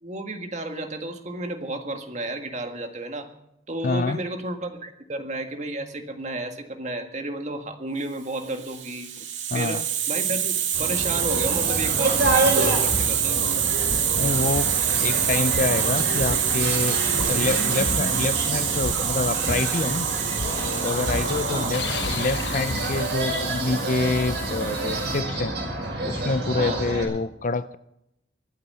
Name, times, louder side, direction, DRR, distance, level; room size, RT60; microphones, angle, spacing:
voice 1, 0.0-3.3 3.7-9.1 9.5-13.4 21.5-21.9 26.6-26.8, right 2 dB, 40° right, 6 dB, 1.8 m, -32 dB
voice 2, 3.8-4.2 9.5-9.8 14.2-17.0 17.3-20.1 20.8-25.5 26.0-27.8, left 3 dB, 40° left, 14 dB, 0.5 m, -27 dB
Hiss, 8.5-25.2, right 9 dB, 85° right, 2.1 m, -26 dB
sound 1, 10.7-27.0, right 1 dB, 60° right, 5.9 m, -29 dB
sound 2, 12.0-23.0, left 3 dB, 65° left, 0.9 m, -34 dB
24.5 x 8.5 x 5.6 m, 0.80 s
head